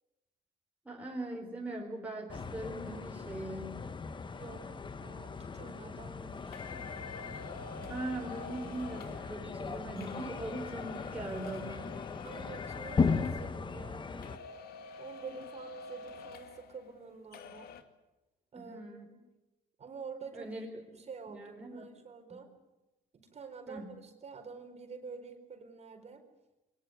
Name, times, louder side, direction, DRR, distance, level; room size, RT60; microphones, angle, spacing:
voice 1, 0.8-3.9 7.9-12.0 18.5-19.1 20.3-20.8 21.3-21.8 22.3-22.4 23.7-23.9, right 2 dB, 10° right, -1 dB, 4.6 m, -41 dB
sound 1, 2.3-14.4, left 5 dB, 30° left, 1.4 m, -37 dB
voice 2, 4.3-6.6 12.2-14.4 15.0-17.7 18.5-19.2 19.8-20.5 20.9-22.5 23.3-26.2, right 5 dB, 40° right, 5 dB, 4.4 m, -48 dB
sound 2, 6.5-14.0 14.2-17.1 17.3-17.8, left 5 dB, 65° left, 2.2 m, -49 dB
22.5 x 20.0 x 9.5 m, 1.0 s
cardioid pair, 110°, 17 cm